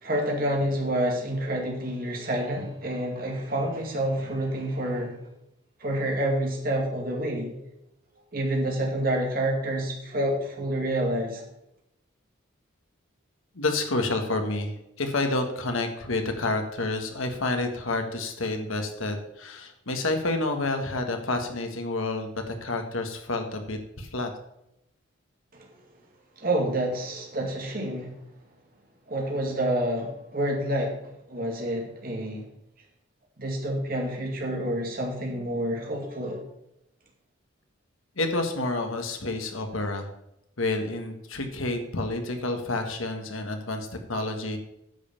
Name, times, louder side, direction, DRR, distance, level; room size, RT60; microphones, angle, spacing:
voice 1, 0.0-5.2 5.8-7.6 8.3-11.4 26.4-28.1 29.1-31.0 31.3-32.5 33.4-36.4, right 1 dB, 45° right, 0 dB, 2.3 m, -28 dB
voice 2, 13.5-24.3 38.2-40.1 40.6-44.6, left 2 dB, 85° left, 5 dB, 1.6 m, -29 dB
9.8 x 5.5 x 7.1 m, 0.81 s
head